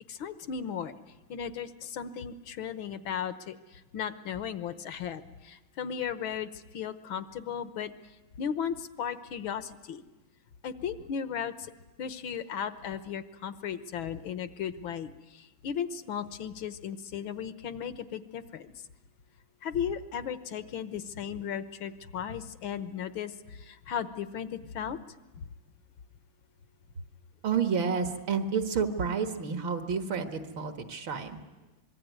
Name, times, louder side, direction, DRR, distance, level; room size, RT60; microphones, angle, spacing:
voice 1, 0.1-0.9 1.3-7.9 8.4-10.0 10.6-11.7 12.0-18.7 19.6-25.0 25.4-25.5, left 8 dB, 80° left, 12 dB, 1.9 m, -36 dB
voice 2, 27.4-31.4, right 6 dB, 75° right, 7 dB, 2.4 m, -30 dB
25.5 x 22.5 x 9.4 m, 1.1 s
omnidirectional pair, 2.2 m